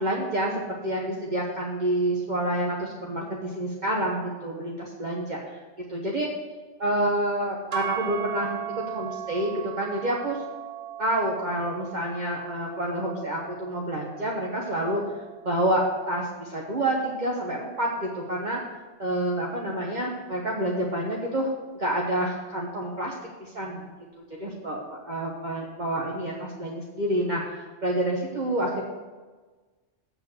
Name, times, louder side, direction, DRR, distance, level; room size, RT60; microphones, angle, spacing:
voice 1, 0.0-5.6 5.9-6.3 6.8-10.4 11.0-15.0 15.4-18.6 19.0-23.9 24.2-28.8, right 1 dB, 40° right, -3 dB, 1.2 m, -28 dB
sound 1, 7.7-16.0, right 11 dB, 75° right, 1.3 m, -38 dB
7.8 x 6.8 x 6.6 m, 1.3 s
omnidirectional pair, 1.3 m